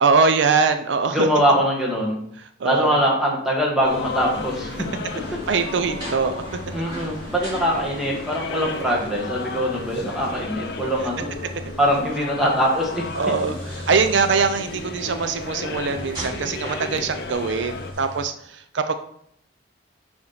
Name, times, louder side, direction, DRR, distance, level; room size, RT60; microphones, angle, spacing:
voice 1, 0.0-1.3 2.6-3.0 5.5-6.4 8.7-8.9 13.1-13.6 13.9-18.9, right 5 dB, 70° right, 9 dB, 0.5 m, -22 dB
voice 2, 1.1-2.2 2.6-4.8 6.7-11.3 11.8-13.1, equal, ahead, -3 dB, 1.7 m, -22 dB
sound 1, 3.8-17.9, left 4 dB, 55° left, 0.5 m, -35 dB
sound 2, 3.9-18.2, equal, 25° right, 3.2 m, -38 dB
6.4 x 4.3 x 5.7 m, 0.70 s
head